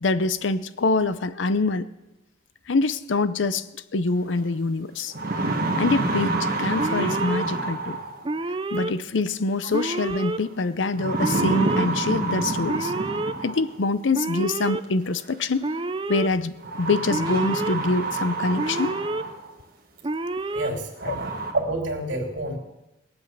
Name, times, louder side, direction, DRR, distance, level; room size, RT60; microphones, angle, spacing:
voice 1, 0.0-1.9 2.7-3.7 3.9-5.1 5.8-8.0 8.7-12.9 13.4-15.7 16.1-18.9 21.1-21.2, left 3 dB, 85° left, 14 dB, 0.7 m, -25 dB
sound 1, 4.4-4.5 4.9-8.3 9.8-10.2 11.0-13.8 15.0-15.1 16.6-19.5 20.0-20.1 20.6-20.7 21.0-21.5, right 2 dB, 50° right, 1.8 m, -27 dB
Alarm, 6.8-7.4 8.2-8.9 9.7-10.4 11.2-11.9 12.7-13.3 14.1-14.8 15.6-16.3 17.1-17.8 18.6-19.2 20.0-20.7, right 2 dB, 25° right, 0.5 m, -28 dB
voice 2, 20.5-22.6, right 1 dB, 80° right, 2 dB, 3.1 m, -29 dB
20.5 x 8.1 x 6.7 m, 0.98 s
head